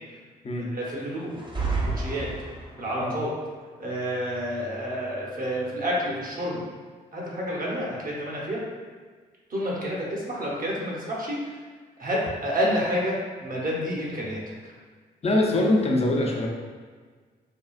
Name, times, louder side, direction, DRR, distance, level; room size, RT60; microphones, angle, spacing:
voice 1, 0.7-1.3 2.0-2.3 2.8-3.3 3.8-6.6 7.1-8.6 9.5-11.5 12.0-13.1 13.4-14.4, equal, 45° right, -5 dB, 1.0 m, -29 dB
sound 1, 1.3-3.0, right 3 dB, 25° right, 0.7 m, -30 dB
voice 2, 15.2-16.5, left 1 dB, 30° left, 0 dB, 0.6 m, -23 dB
3.6 x 2.3 x 2.5 m, 1.5 s
hypercardioid pair, 40°, 20 cm